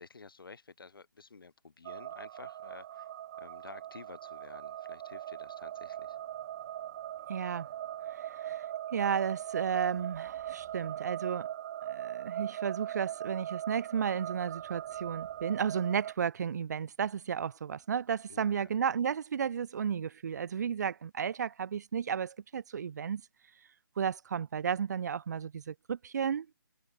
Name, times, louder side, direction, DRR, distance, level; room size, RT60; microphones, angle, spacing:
voice 1, 0.0-3.1 3.4-6.2 18.3-18.7, left 4 dB, 70° left, 5.2 m, -51 dB
sound 1, 1.8-16.1, right 12 dB, 35° right, 2.0 m, -40 dB
voice 2, 7.3-7.7 8.1-8.6 8.9-11.5 11.9-23.2 24.0-26.5, right 7 dB, 50° right, 1.4 m, -33 dB
figure-of-eight pair, 150°, 12 cm